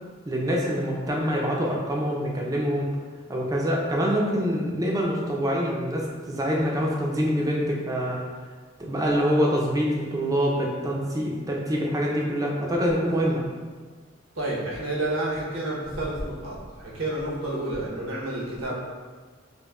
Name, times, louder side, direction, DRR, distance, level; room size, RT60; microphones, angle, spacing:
voice 1, 0.3-2.9 3.3-8.3 8.8-13.4, equal, 20° right, -2 dB, 0.5 m, -25 dB
voice 2, 14.3-18.7, right 1 dB, 85° right, -5 dB, 1.0 m, -30 dB
5.1 x 2.1 x 2.4 m, 1.5 s
head